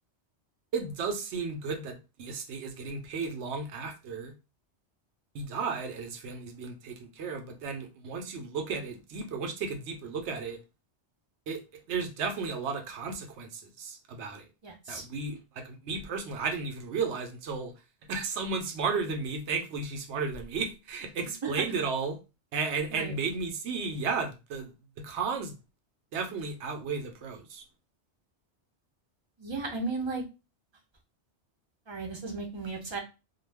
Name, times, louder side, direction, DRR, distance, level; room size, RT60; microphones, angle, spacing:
voice 1, 0.7-4.3 5.3-10.6 11.5-14.4 14.9-17.7 18.1-22.2 22.5-25.5 26.1-27.6, right 4 dB, 80° right, 0.9 m, -34 dB
voice 2, 14.6-15.0 21.4-21.5 22.9-23.1 29.4-30.2 31.9-33.0, right 3 dB, 30° right, 0.6 m, -35 dB
2.3 x 2.3 x 3.3 m
omnidirectional pair, 1.1 m